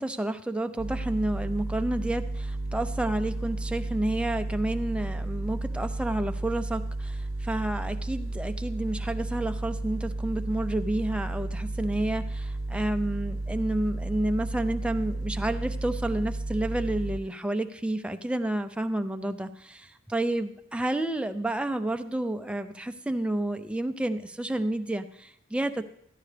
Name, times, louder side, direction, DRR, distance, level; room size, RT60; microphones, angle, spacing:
voice 1, 0.0-25.8, right 1 dB, 5° right, 7 dB, 0.4 m, -30 dB
sound 1, 0.8-17.2, right 2 dB, 80° right, 0.8 m, -33 dB
14.5 x 10.5 x 3.3 m, 0.72 s
head